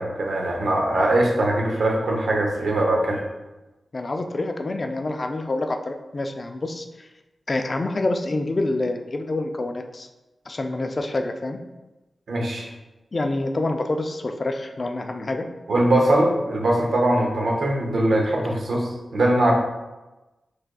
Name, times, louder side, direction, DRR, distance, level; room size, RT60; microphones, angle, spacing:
voice 1, 0.0-3.2 12.3-12.7 15.7-19.5, right 1 dB, 85° right, -1 dB, 0.7 m, -21 dB
voice 2, 3.9-7.1 7.5-10.1 10.5-11.6 13.1-15.5, left 2 dB, 40° left, 5 dB, 0.3 m, -27 dB
4.7 x 3.3 x 2.2 m, 1.1 s
wide cardioid pair, 85°, 0 cm